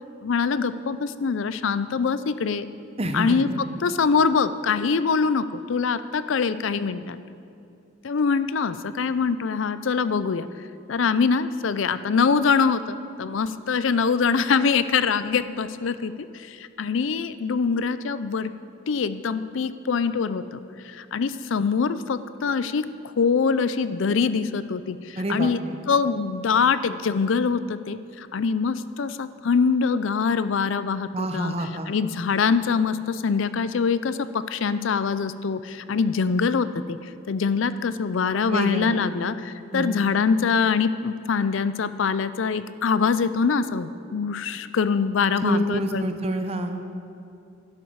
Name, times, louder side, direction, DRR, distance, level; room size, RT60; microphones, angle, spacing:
voice 1, 0.2-2.7 3.1-7.2 8.0-10.5 10.9-18.5 18.9-22.9 23.2-25.6 25.9-31.5 31.9-37.0 37.3-46.0, left 5 dB, 70° left, 14 dB, 0.4 m, -24 dB
voice 2, 3.0-3.4 25.2-25.5 31.1-31.9 38.4-39.0 39.7-40.0 45.4-46.8, equal, 30° right, 6 dB, 0.8 m, -27 dB
11.5 x 11.5 x 4.7 m, 2.6 s
head